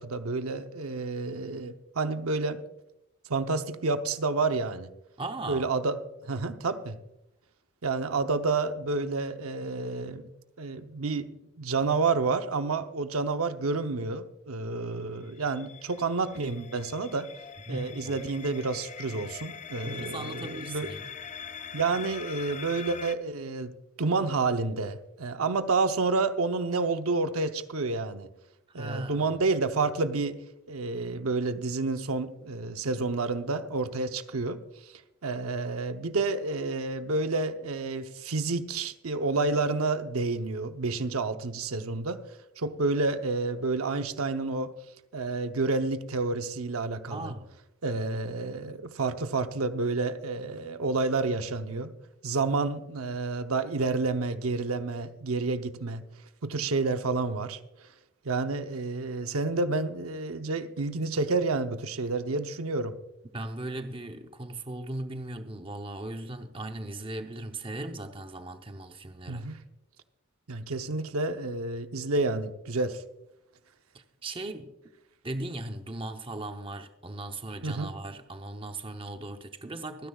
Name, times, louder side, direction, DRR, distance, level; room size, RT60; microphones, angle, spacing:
voice 1, 0.0-2.6 3.3-4.9 5.5-6.0 6.2-7.0 7.8-10.2 10.6-17.3 17.7-20.9 21.7-23.7 24.0-28.3 28.7-30.4 30.7-34.9 35.2-42.2 42.6-44.7 45.1-47.3 47.8-51.9 52.2-56.0 56.4-57.6 58.2-63.0 69.3-69.6 70.5-73.0 77.6-77.9, right 3 dB, 80° right, 0.8 m, -29 dB
voice 2, 5.2-5.7 17.7-18.3 19.8-21.1 28.7-29.3 47.1-47.5 63.3-69.5 73.9-74.7 75.2-80.1, right 2 dB, 25° right, 0.7 m, -38 dB
sound 1, 15.0-23.2, left 7 dB, 35° left, 0.4 m, -43 dB
24.5 x 10.0 x 2.4 m
head